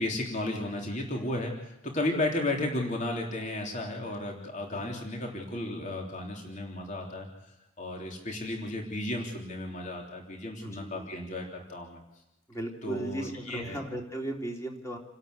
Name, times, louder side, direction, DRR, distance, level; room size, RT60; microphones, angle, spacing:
voice 1, 0.0-12.0 12.8-13.8, left 1 dB, 35° left, 1 dB, 3.5 m, -34 dB
voice 2, 4.7-5.0 10.6-11.1 12.5-15.0, right 1 dB, 15° left, 1 dB, 3.3 m, -37 dB
28.5 x 12.5 x 8.1 m, 0.89 s
head